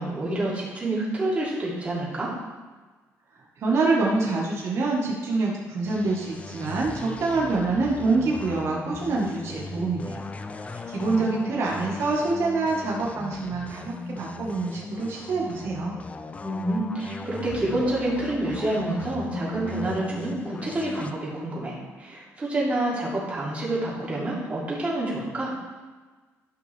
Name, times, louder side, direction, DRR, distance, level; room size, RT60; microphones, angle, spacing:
voice 1, 0.0-2.3 10.7-11.3 16.4-25.5, right 1 dB, 25° right, -6 dB, 2.9 m, -28 dB
voice 2, 3.6-10.2 10.9-15.9, right 3 dB, 55° right, -3 dB, 1.6 m, -26 dB
sound 1, 5.8-21.1, left 4 dB, 25° left, 0.4 m, -38 dB
12.0 x 5.7 x 3.5 m, 1.3 s
cardioid pair, 125°, 6 cm